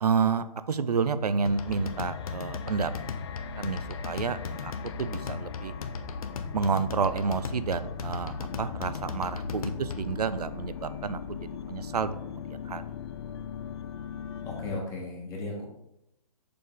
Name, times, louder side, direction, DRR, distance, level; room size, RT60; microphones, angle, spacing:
voice 1, 0.0-2.9 3.6-3.8 4.0-4.7 5.0-5.7 6.5-11.2 11.7-12.4 12.7-12.8, right 5 dB, 90° right, 13 dB, 0.5 m, -29 dB
sound 1, 1.5-10.2, left 5 dB, 65° left, 0.8 m, -37 dB
sound 2, 1.5-14.8, left 8 dB, 45° left, 0.4 m, -41 dB
voice 2, 14.4-15.6, left 2 dB, 15° left, -2 dB, 1.3 m, -35 dB
6.7 x 3.8 x 3.7 m, 0.81 s
hypercardioid pair, 145°, 19 cm